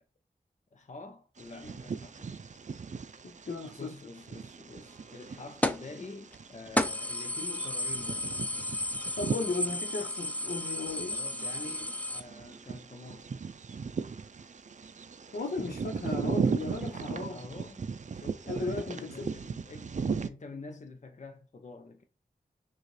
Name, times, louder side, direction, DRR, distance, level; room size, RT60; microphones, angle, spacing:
voice 1, 0.7-2.5 3.8-8.3 11.0-13.3 17.2-17.9 18.1-19.9 20.2-22.0, left 3 dB, 50° left, 0.6 m, -47 dB
Bird vocalization bird call bird song, 1.4-20.3, right 5 dB, 50° right, 0.4 m, -38 dB
voice 2, 3.4-3.9 9.2-11.1 15.3-17.4 18.5-19.3, left 3 dB, 85° left, 1.0 m, -35 dB
sound 1, 5.6-5.9 6.3-6.4 6.8-12.2, left 1 dB, 10° left, 0.4 m, -33 dB
6.4 x 2.4 x 3.2 m
wide cardioid pair, 55°, 16 cm